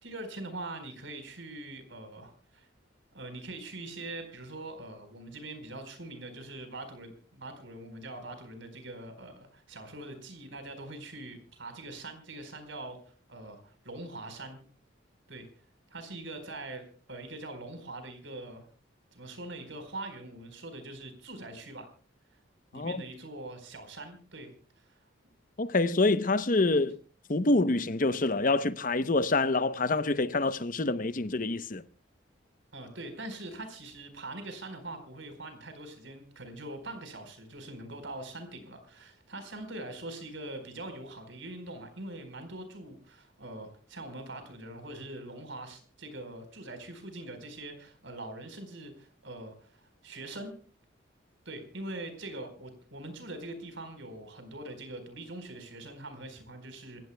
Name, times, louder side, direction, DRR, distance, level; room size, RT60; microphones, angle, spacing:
voice 1, 0.0-2.7 3.1-13.0 13.3-14.6 15.3-15.5 15.9-18.7 19.1-21.9 22.7-25.0 32.7-50.5 51.4-57.1, right 2 dB, 75° right, 4.4 m, -43 dB
voice 2, 25.6-27.0 27.3-31.8, left 2 dB, 45° left, 0.8 m, -26 dB
27.5 x 15.5 x 2.2 m
head